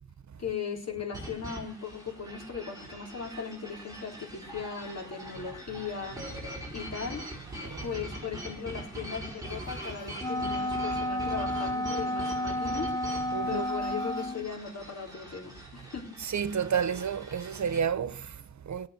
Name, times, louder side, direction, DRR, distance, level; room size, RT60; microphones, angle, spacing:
voice 1, 0.4-6.2 6.7-7.2 7.8-12.9 13.5-16.2, left 6 dB, 60° left, 4.1 m, -38 dB
sound 1, 1.1-17.8, right 1 dB, 10° right, 7.9 m, -43 dB
Ringtone, 9.4-11.1 13.6-15.3, left 3 dB, 35° left, 6.2 m, -56 dB
Wind instrument woodwind instrument, 10.2-14.5, left 1 dB, 10° left, 0.8 m, -31 dB
voice 2, 13.3-13.6 16.2-18.9, right 7 dB, 70° right, 1.1 m, -31 dB
20.0 x 8.6 x 8.1 m
wide cardioid pair, 145°, 29 cm